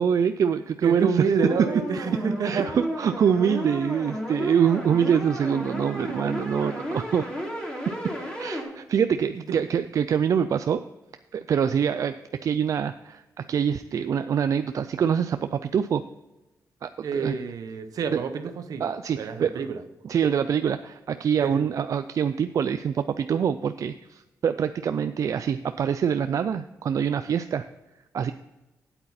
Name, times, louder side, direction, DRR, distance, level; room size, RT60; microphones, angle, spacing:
voice 1, 0.0-1.2 2.4-7.3 8.4-10.8 11.3-12.2 12.4-16.0 16.8-17.4 18.1-18.2 18.8-19.6 20.0-27.7 28.1-28.3, right 7 dB, 60° right, 10 dB, 0.4 m, -25 dB
voice 2, 0.8-2.8 9.5-9.6 17.0-18.8 19.2-19.8 21.4-21.6, right 5 dB, 80° right, 9 dB, 0.9 m, -28 dB
sound 1, 1.4-8.6, equal, 15° left, 3.1 m, -33 dB
9.0 x 8.2 x 4.2 m, 1.0 s
cardioid pair, 105°, 6 cm